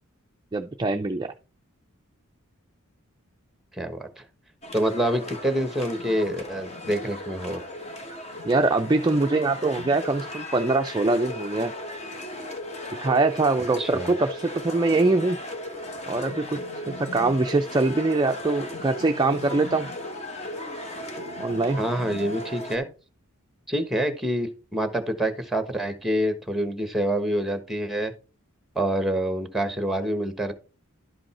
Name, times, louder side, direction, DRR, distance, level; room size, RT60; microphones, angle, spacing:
voice 1, 0.5-1.3 8.4-11.7 13.0-15.4 16.1-16.6 16.9-19.9 21.4-21.8, right 3 dB, 20° right, 5 dB, 0.4 m, -23 dB
voice 2, 3.7-4.2 4.7-7.6 13.8-14.1 21.8-22.9 23.7-28.1 28.7-30.5, right 1 dB, ahead, 9 dB, 1.2 m, -26 dB
sound 1, 4.6-22.8, left 1 dB, 30° left, 1.3 m, -37 dB
11.5 x 5.2 x 4.3 m, 0.33 s
head